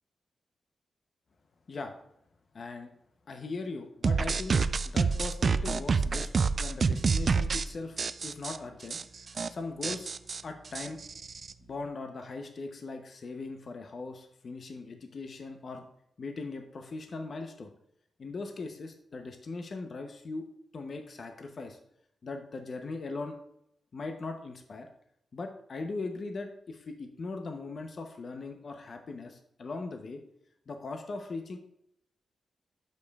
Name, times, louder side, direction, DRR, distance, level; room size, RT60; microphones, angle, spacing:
voice 1, 2.5-2.9 3.3-4.6 4.8-6.3 6.6-10.1 10.4-11.0 11.6-15.8 16.2-17.7 18.2-20.5 20.7-21.8 22.2-23.4 23.9-24.9 25.3-30.2 30.7-31.6, left 3 dB, 50° left, 5 dB, 0.7 m, -39 dB
sound 1, 4.0-7.7 8.0-8.6 8.9-9.0 9.3-9.5 9.8-11.5, right 5 dB, 50° right, 0.3 m, -28 dB
11.5 x 5.3 x 2.3 m, 0.74 s
cardioid pair, 100°, 0 cm